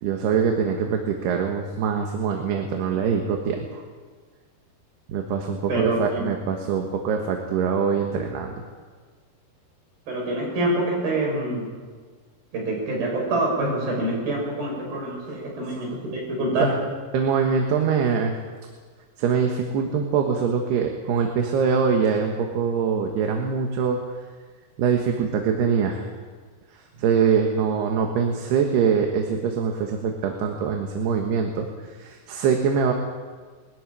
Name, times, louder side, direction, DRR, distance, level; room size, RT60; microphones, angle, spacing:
voice 1, 0.0-3.8 5.1-8.6 16.6-16.7 17.1-18.4 19.2-24.0 24.8-26.1 26.7-32.9, right 6 dB, 80° right, 2 dB, 3.5 m, -23 dB
voice 2, 5.7-6.3 10.1-11.7 12.5-16.8, right 1 dB, 60° right, -2 dB, 8.3 m, -26 dB
21.0 x 14.5 x 9.9 m, 1.5 s
omnidirectional pair, 4.7 m